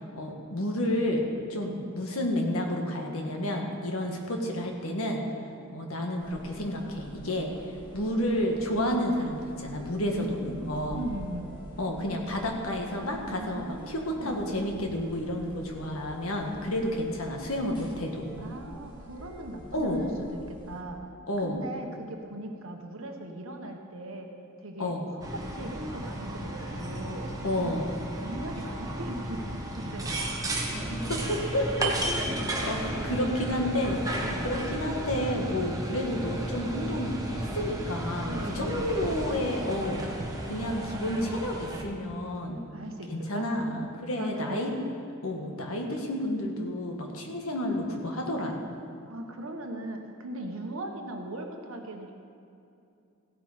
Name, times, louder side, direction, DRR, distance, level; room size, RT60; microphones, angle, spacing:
voice 1, 0.1-1.2 1.5-5.2 5.7-7.5 7.9-11.0 11.8-18.2 19.7-20.0 21.3-21.6 24.8-25.1 27.4-27.9 30.3-30.4 30.7-31.9 32.7-40.1 40.4-42.7 43.1-44.8 45.2-48.6, left 1 dB, 75° left, 2 dB, 1.7 m, -30 dB
sound 1, 6.2-20.8, equal, 20° left, 2.0 m, -47 dB
voice 2, 10.9-11.5 13.2-14.5 18.4-21.0 21.4-27.4 27.6-27.8 28.2-30.2 32.1-32.4 34.2-34.5 38.2-39.0 40.5-41.2 42.7-43.5 44.2-44.7 49.1-52.1, right 1 dB, 65° right, 3 dB, 1.1 m, -39 dB
sound 2, 25.2-41.8, right 1 dB, 15° right, 1.3 m, -34 dB
15.5 x 8.4 x 5.0 m, 2.6 s
head